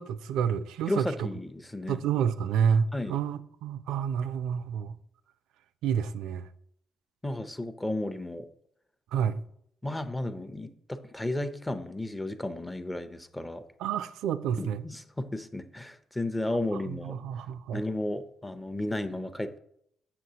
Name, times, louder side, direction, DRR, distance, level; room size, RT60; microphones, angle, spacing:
voice 1, 0.0-1.1 1.9-5.0 5.8-6.5 9.1-9.4 13.8-14.8 16.9-17.8, right 7 dB, 90° right, 0.3 m, -29 dB
voice 2, 0.9-2.0 2.9-3.2 7.2-8.5 9.8-13.6 14.6-17.2 17.7-19.6, left 1 dB, 10° left, 0.5 m, -33 dB
7.7 x 6.0 x 2.8 m
cardioid pair, 90°, 0 cm